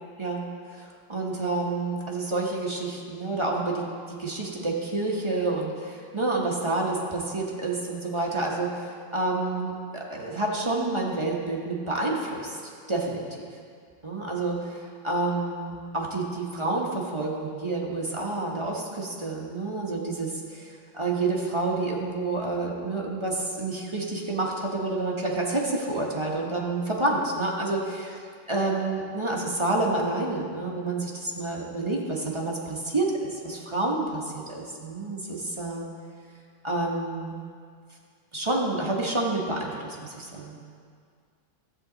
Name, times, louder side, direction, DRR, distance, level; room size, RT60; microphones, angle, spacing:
voice 1, 0.7-12.6 12.9-13.2 14.0-28.2 28.5-35.9 36.6-37.3 38.3-40.6, right 2 dB, 25° right, -2 dB, 0.7 m, -29 dB
13.0 x 7.8 x 3.9 m, 2.1 s
omnidirectional pair, 2.0 m